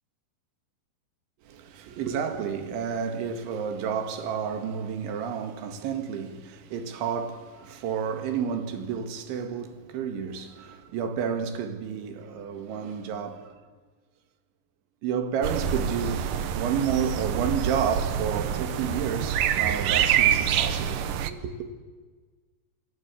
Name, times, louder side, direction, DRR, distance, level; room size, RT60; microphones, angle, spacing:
voice 1, 1.4-13.6 15.0-21.7, right 7 dB, 90° right, 4.4 m, -31 dB
sound 1, 15.4-21.3, right 9 dB, 70° right, 2.2 m, -26 dB
27.5 x 25.0 x 8.4 m
omnidirectional pair, 5.2 m